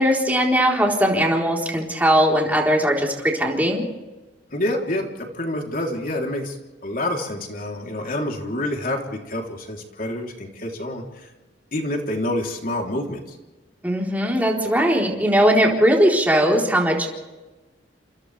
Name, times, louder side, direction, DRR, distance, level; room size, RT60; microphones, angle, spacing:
voice 1, 0.0-3.8 13.8-17.1, equal, 10° right, -2 dB, 4.1 m, -19 dB
voice 2, 4.5-6.6 6.8-11.3 11.7-13.4, left 1 dB, 50° left, 1 dB, 3.6 m, -27 dB
30.0 x 27.5 x 3.5 m, 1.2 s
head